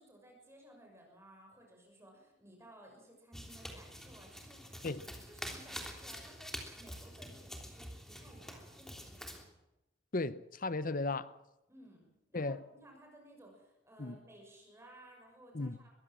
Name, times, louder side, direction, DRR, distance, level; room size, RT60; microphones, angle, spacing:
voice 1, 0.0-9.5 11.7-15.9, right 1 dB, 15° right, 6.4 m, -58 dB
sound 1, 3.3-9.4, equal, ahead, 3.3 m, -47 dB
voice 2, 10.1-11.3 12.3-12.6 14.0-14.2 15.5-15.8, left 2 dB, 45° left, 0.9 m, -35 dB
22.5 x 16.0 x 7.6 m
head